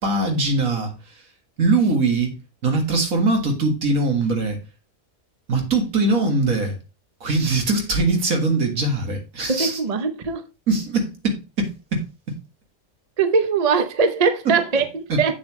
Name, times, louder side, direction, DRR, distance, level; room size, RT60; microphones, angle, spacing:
voice 1, 0.0-0.9 1.6-2.4 2.6-4.6 5.5-6.8 7.2-9.8 10.7-12.4 14.5-14.6 15.1-15.2, right 3 dB, 70° right, 2.2 m, -21 dB
voice 2, 9.5-10.4 13.2-15.3, right 5 dB, 35° right, 0.7 m, -21 dB
7.9 x 7.2 x 3.1 m
omnidirectional pair, 1.5 m